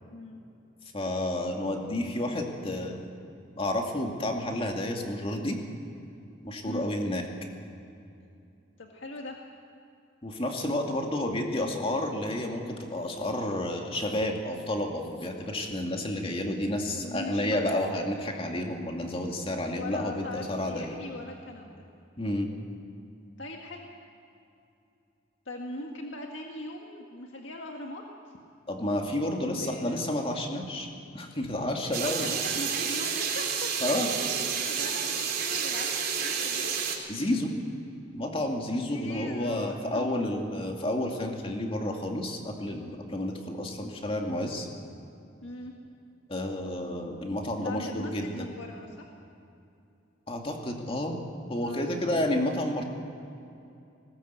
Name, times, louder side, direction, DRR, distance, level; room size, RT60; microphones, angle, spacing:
voice 1, 0.1-0.4 6.6-6.9 8.8-9.4 16.1-16.4 17.0-17.8 19.7-21.8 23.4-23.9 25.4-28.3 29.3-30.1 32.0-33.7 34.5-36.8 38.7-40.1 45.4-45.7 47.6-49.0 51.5-52.0, left 1 dB, 75° left, 1 dB, 1.7 m, -40 dB
voice 2, 0.9-3.1 3.6-5.6 6.4-7.2 10.2-21.0 22.2-22.5 28.7-30.9 31.1-32.3 33.8-34.1 37.1-37.5 38.1-44.7 46.3-48.5 50.3-51.2 51.5-52.8, left 1 dB, 30° left, 2 dB, 2.3 m, -30 dB
sound 1, 31.9-37.0, right 6 dB, 55° right, 3.1 m, -30 dB
20.0 x 19.0 x 8.2 m, 2.6 s
head